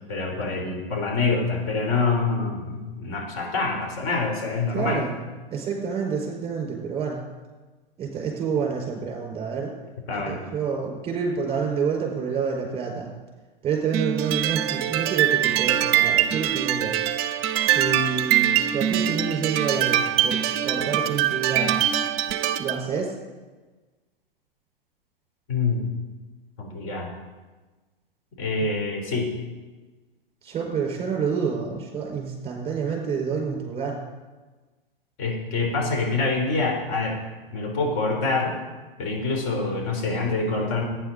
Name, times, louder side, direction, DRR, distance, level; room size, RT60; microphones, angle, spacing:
voice 1, 0.1-5.1 10.1-10.4 25.5-25.9 26.6-27.1 28.4-29.3 35.2-37.2 37.5-38.6 39.0-40.8, left 3 dB, 45° left, 0 dB, 3.6 m, -26 dB
voice 2, 4.7-5.1 5.5-7.2 8.0-9.7 10.3-13.1 13.6-17.0 17.6-21.8 22.6-23.1 28.6-28.7 30.4-34.0, right 6 dB, 20° right, 0 dB, 4.6 m, -28 dB
sound 1, 13.9-22.8, right 11 dB, 35° right, 0.7 m, -23 dB
18.0 x 9.7 x 4.0 m, 1.3 s
figure-of-eight pair, 105°, 29 cm